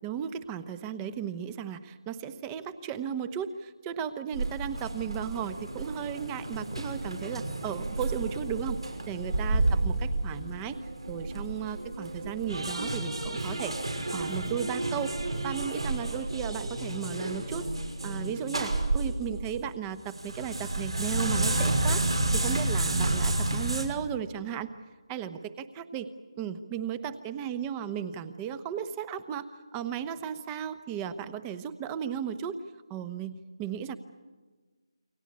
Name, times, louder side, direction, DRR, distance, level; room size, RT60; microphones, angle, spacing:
voice 1, 0.0-8.8 9.1-10.8 11.1-13.8 14.1-15.1 15.4-17.7 18.0-24.7 25.1-26.1 26.4-32.6 32.9-34.0, right 8 dB, 15° right, 13 dB, 1.0 m, -35 dB
sound 1, 4.3-19.6 20.0-23.8, right 2 dB, 85° right, 5.9 m, -31 dB
29.0 x 24.0 x 8.7 m, 1.4 s
figure-of-eight pair, 155°, 3 cm